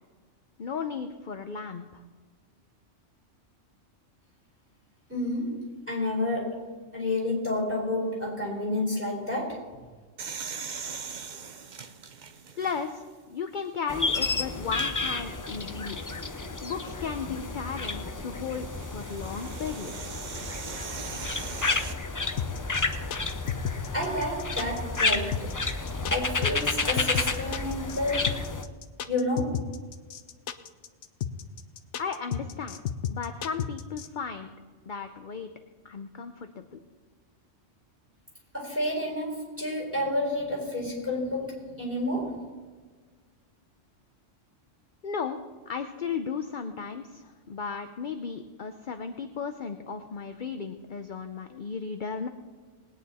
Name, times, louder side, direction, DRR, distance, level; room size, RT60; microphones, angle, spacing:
voice 1, 0.6-2.0 12.6-16.0 16.6-20.2 32.0-32.8 33.1-34.5 34.9-35.5 35.8-36.8 45.0-45.4 45.7-52.3, left 6 dB, 50° left, 7 dB, 0.7 m, -35 dB
voice 2, 5.1-9.7 23.9-25.6 26.1-28.5 29.1-29.7 38.5-42.5, left 1 dB, 10° right, -1 dB, 4.4 m, -30 dB
sound 1, 10.2-13.1 13.7-13.8 14.6-14.9 17.0-21.9, right 6 dB, 45° right, 0.8 m, -40 dB
sound 2, 13.9-28.6, left 3 dB, 25° left, 0.4 m, -31 dB
sound 3, 22.4-34.1, left 9 dB, 70° left, 1.0 m, -32 dB
20.5 x 9.3 x 4.2 m, 1.5 s
omnidirectional pair, 1.3 m